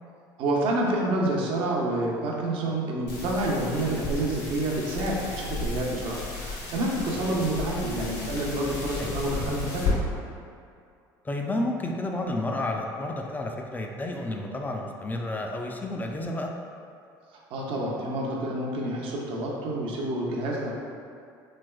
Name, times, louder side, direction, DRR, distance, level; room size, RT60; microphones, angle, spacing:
voice 1, 0.4-10.0 17.3-20.7, right 1 dB, 60° right, -2 dB, 0.6 m, -28 dB
sound 1, 3.1-9.9, left 3 dB, 65° left, 0.8 m, -33 dB
voice 2, 11.2-16.5, left 1 dB, 15° left, 1 dB, 0.3 m, -31 dB
3.2 x 3.0 x 2.2 m, 2.4 s
hypercardioid pair, 80°, 10 cm